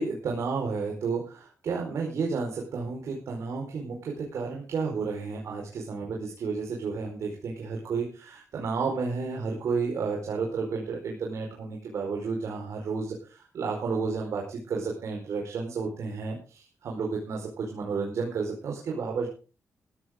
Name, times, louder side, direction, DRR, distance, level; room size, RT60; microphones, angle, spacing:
voice 1, 0.0-19.3, right 4 dB, 70° right, 0 dB, 4.7 m, -32 dB
15.5 x 14.5 x 3.8 m, 0.34 s
cardioid pair, 115°, 5 cm